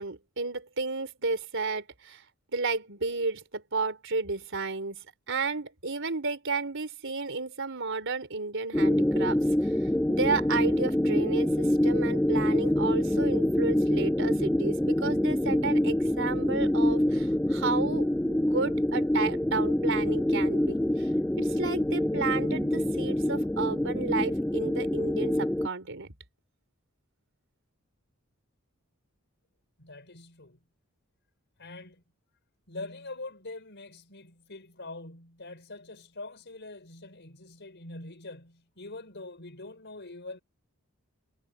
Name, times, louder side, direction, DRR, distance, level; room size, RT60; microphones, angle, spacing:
voice 1, 0.0-2.2 2.5-9.7 10.1-21.1 21.4-26.1, right 4 dB, 65° right, 4.5 m, -32 dB
sound 1, 8.7-25.7, left 1 dB, 5° left, 0.4 m, -26 dB
voice 2, 29.8-30.6 31.6-32.0 32.7-40.4, left 2 dB, 55° left, 5.7 m, -44 dB
head